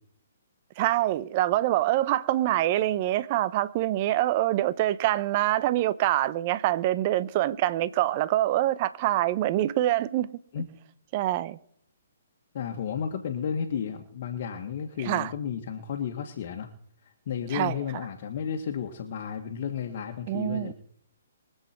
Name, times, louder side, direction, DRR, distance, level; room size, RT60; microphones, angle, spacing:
voice 1, 0.8-10.3 11.1-11.6 15.0-15.3 17.5-17.8 20.3-20.7, right 14 dB, 40° right, 0.8 m, -25 dB
voice 2, 12.5-16.7 17.0-20.7, left 7 dB, 50° left, 1.7 m, -33 dB
24.0 x 8.1 x 4.5 m
hypercardioid pair, 135°, 0 cm